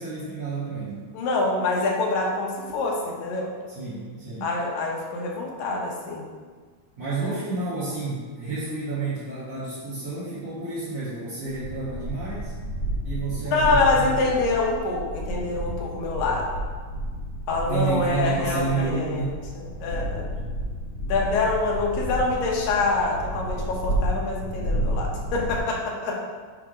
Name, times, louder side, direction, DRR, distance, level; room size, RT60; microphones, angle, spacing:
voice 1, 0.0-1.0 3.7-4.5 7.0-12.5 13.0-14.2 17.7-19.4, right 3 dB, 55° right, -11 dB, 2.4 m, -30 dB
voice 2, 1.1-3.5 4.4-6.3 7.2-7.3 13.5-16.6 17.5-19.3 19.6-20.3 21.1-26.3, left 3 dB, 90° left, -2 dB, 2.8 m, -25 dB
sound 1, 11.5-25.6, equal, 60° left, 1.0 m, -31 dB
7.8 x 3.5 x 5.0 m, 1.5 s
omnidirectional pair, 3.9 m